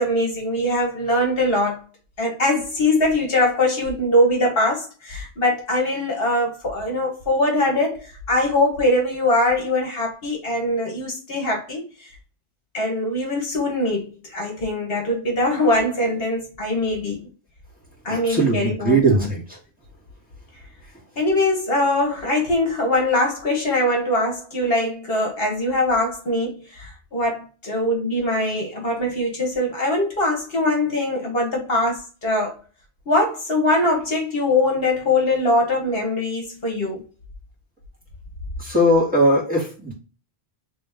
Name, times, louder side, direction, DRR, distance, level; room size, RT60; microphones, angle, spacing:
voice 1, 0.0-1.8 2.2-12.1 12.7-17.3 18.0-19.3 21.2-32.5 33.1-37.0, left 1 dB, 60° left, 1.4 m, -22 dB
voice 2, 18.1-19.4 38.6-39.9, right 1 dB, 10° right, 1.7 m, -19 dB
3.2 x 3.0 x 3.4 m
omnidirectional pair, 1.1 m